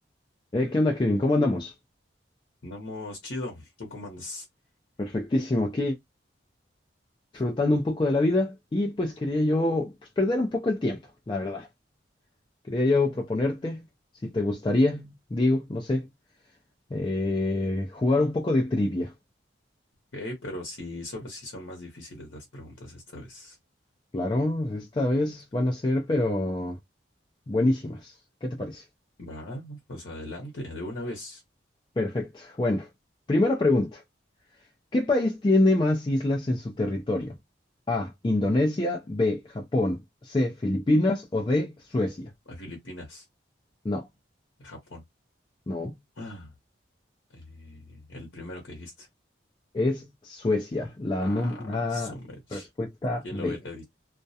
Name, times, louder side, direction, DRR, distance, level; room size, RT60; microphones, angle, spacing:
voice 1, 0.5-1.7 5.0-6.0 7.3-11.0 11.3-11.7 12.7-13.8 14.2-16.1 16.9-19.1 24.1-26.8 27.5-28.1 28.4-28.8 32.0-32.9 33.3-34.0 34.9-37.3 37.9-42.3 43.8-44.1 45.7-45.9 49.7-52.1 52.5-53.6, left 2 dB, 25° left, 0.3 m, -26 dB
voice 2, 2.6-4.5 20.1-23.6 29.2-31.4 42.5-43.2 44.6-45.0 46.2-46.5 47.3-49.1 51.2-52.7 53.2-53.9, left 1 dB, 75° left, 0.8 m, -39 dB
2.3 x 2.1 x 2.6 m
head